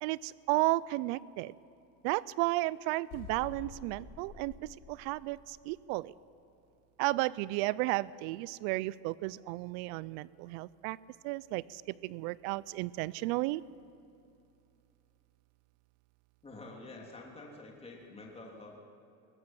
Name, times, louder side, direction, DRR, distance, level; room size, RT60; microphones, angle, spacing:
voice 1, 0.0-1.5 2.0-6.1 7.0-11.0 11.2-13.6, right 19 dB, 85° right, 20 dB, 0.6 m, -33 dB
sound 1, 3.1-5.8, left 5 dB, 80° left, 3.4 m, -49 dB
voice 2, 16.4-18.8, left 2 dB, 15° left, -1 dB, 3.1 m, -48 dB
21.5 x 18.0 x 7.5 m, 2.7 s
cardioid pair, 145°, 42 cm